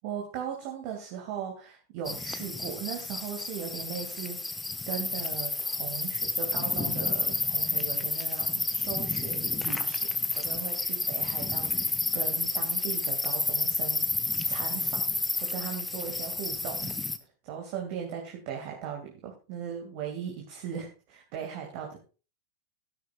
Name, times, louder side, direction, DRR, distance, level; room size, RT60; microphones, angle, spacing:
voice 1, 0.0-4.4 4.9-14.1 14.5-15.1 15.3-16.9 17.4-22.0, right 8 dB, 45° right, 1 dB, 2.5 m, -38 dB
sound 1, 2.1-17.2, left 3 dB, 10° left, 1.1 m, -30 dB
13.5 x 11.5 x 2.5 m, 0.35 s
figure-of-eight pair, 90°, 0 cm